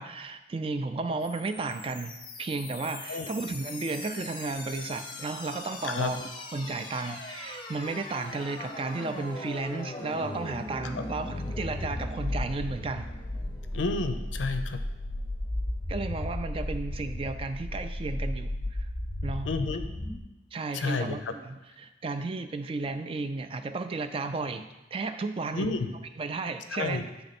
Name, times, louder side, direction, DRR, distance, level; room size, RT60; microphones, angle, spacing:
voice 1, 0.0-2.1 2.4-13.1 15.9-18.9 19.2-19.5 20.5-25.7 26.2-27.1, right 3 dB, 30° right, 9 dB, 0.3 m, -33 dB
sound 1, 1.2-20.2, left 1 dB, 25° left, 0.6 m, -36 dB
voice 2, 13.7-14.8 19.5-19.8 20.7-21.2 25.5-25.9 26.7-27.0, left 3 dB, 85° left, 8 dB, 0.5 m, -30 dB
8.8 x 3.4 x 4.1 m, 0.98 s
head